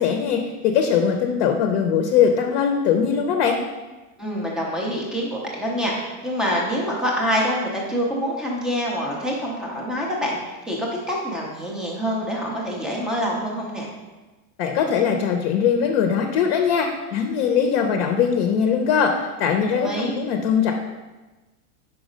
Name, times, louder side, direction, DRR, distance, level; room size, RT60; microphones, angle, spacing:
voice 1, 0.0-3.6 14.6-20.7, left 7 dB, 45° left, 4 dB, 0.6 m, -21 dB
voice 2, 4.2-13.9 19.7-20.1, equal, ahead, -3 dB, 0.4 m, -26 dB
5.2 x 4.8 x 4.9 m, 1.2 s
supercardioid pair, 160°, 43 cm